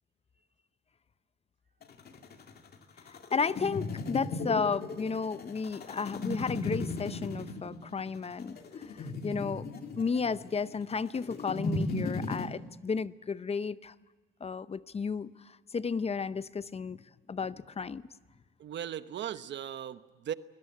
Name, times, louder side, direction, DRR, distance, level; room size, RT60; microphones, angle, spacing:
sound 1, 1.8-12.5, left 2 dB, 55° left, 2.4 m, -36 dB
voice 1, 3.3-9.7 10.0-13.9 14.4-18.1, left 5 dB, 30° left, 16 dB, 0.7 m, -33 dB
voice 2, 18.6-20.3, right 10 dB, 65° right, 13 dB, 1.0 m, -38 dB
21.0 x 20.0 x 9.3 m, 1.3 s
cardioid pair, 90°, 20 cm